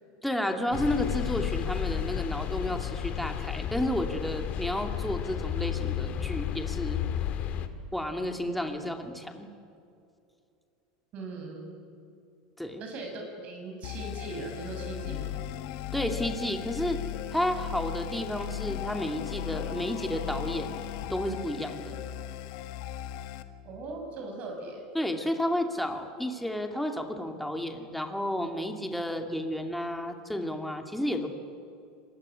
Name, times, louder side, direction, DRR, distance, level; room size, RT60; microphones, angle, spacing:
voice 1, 0.2-7.0 7.9-9.5 12.6-12.8 15.9-17.0 17.3-20.7 21.1-22.0 24.9-31.3, left 1 dB, ahead, 4 dB, 2.5 m, -31 dB
sound 1, 0.7-7.7, left 10 dB, 45° left, 2.0 m, -32 dB
voice 2, 11.1-11.7 12.8-15.4 23.6-24.8, right 2 dB, 45° right, 3 dB, 6.6 m, -39 dB
sound 2, 13.8-23.4, left 12 dB, 65° left, 1.6 m, -37 dB
24.5 x 20.0 x 9.8 m, 2.5 s
supercardioid pair, 120°, 3 cm